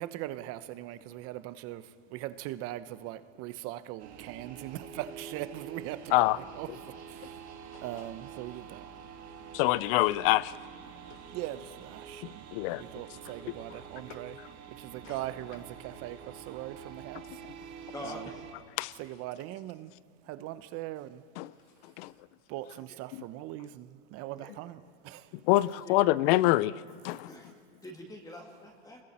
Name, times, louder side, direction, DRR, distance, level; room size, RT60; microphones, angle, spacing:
voice 1, 0.0-7.5 7.8-8.9 11.3-12.5 12.8-17.4 18.0-18.3 19.0-19.9 20.2-21.2 22.5-25.3, right 14 dB, 45° right, 0.9 m, -41 dB
sound 1, 4.0-18.5, right 7 dB, 85° right, 3.3 m, -47 dB
voice 2, 9.5-10.5 12.5-12.8 18.8-18.9 21.4-21.5 22.0-22.1 25.4-26.7 27.0-27.3, left 18 dB, 60° left, 0.6 m, -25 dB
voice 3, 17.9-18.4 22.9-23.0 24.4-24.6 25.7-26.0 27.2-27.6 27.8-29.0, left 1 dB, 10° left, 2.4 m, -45 dB
29.5 x 21.5 x 4.4 m
supercardioid pair, 145°, 32 cm